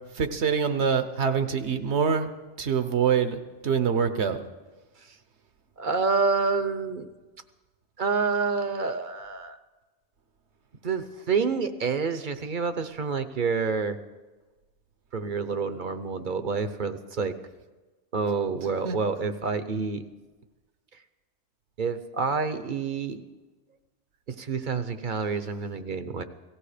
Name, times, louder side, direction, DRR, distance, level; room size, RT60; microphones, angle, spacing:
voice 1, 0.1-2.3 2.6-4.4 18.8-19.0, right 6 dB, 65° right, 9 dB, 1.3 m, -25 dB
voice 2, 5.8-7.1 8.0-9.6 10.8-14.0 15.1-17.3 18.1-20.0 21.8-23.2 24.3-26.2, right 5 dB, 45° right, 10 dB, 0.9 m, -28 dB
17.5 x 15.5 x 5.0 m, 1.2 s
omnidirectional pair, 1.2 m